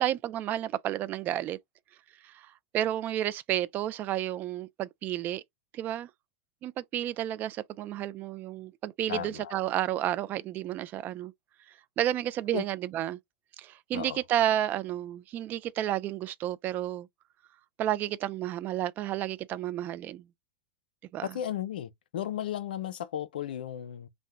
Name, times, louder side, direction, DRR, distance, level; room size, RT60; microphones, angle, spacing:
voice 1, 0.0-1.6 2.2-5.4 5.7-6.1 6.6-11.3 11.7-13.2 13.6-17.1 17.8-20.3 21.1-21.4, right 12 dB, 35° right, 0.3 m, -31 dB
voice 2, 9.1-9.5 12.5-12.6 13.9-14.2 21.2-24.1, left 10 dB, 75° left, 0.4 m, -35 dB
2.7 x 2.0 x 3.4 m
hypercardioid pair, 100°, 5 cm